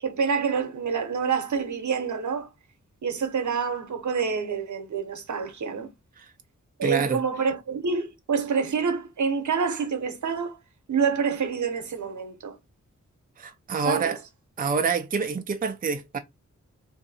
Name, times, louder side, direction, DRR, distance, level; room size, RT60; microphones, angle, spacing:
voice 1, 0.0-2.5 3.0-5.9 6.8-10.6 10.9-12.6 13.9-14.1, right 6 dB, 70° right, 0.9 m, -27 dB
voice 2, 6.8-7.2 13.4-14.2 14.6-16.2, right 5 dB, 30° right, 0.5 m, -27 dB
3.7 x 2.6 x 4.1 m
wide cardioid pair, 140°, 31 cm